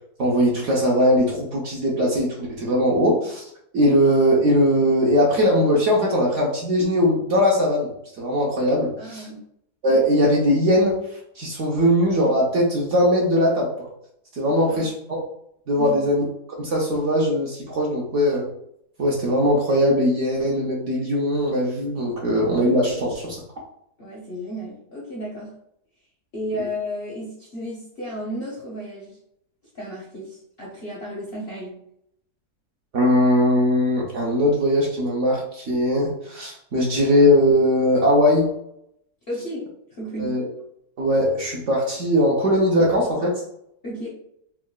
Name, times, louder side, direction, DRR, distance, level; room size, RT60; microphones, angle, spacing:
voice 1, 0.2-3.4 3.7-9.3 9.8-11.0 11.4-13.9 14.3-15.2 15.7-16.2 16.6-18.5 19.0-23.4 32.9-38.5 40.2-40.4 41.0-43.4, equal, 65° right, -3 dB, 0.8 m, -20 dB
voice 2, 9.0-9.4 14.5-14.9 15.8-16.0 24.0-25.5 26.3-29.2 29.7-31.8 39.3-40.3 43.8-44.1, equal, 55° left, -5 dB, 0.7 m, -33 dB
3.7 x 2.2 x 2.2 m, 0.76 s
omnidirectional pair, 1.7 m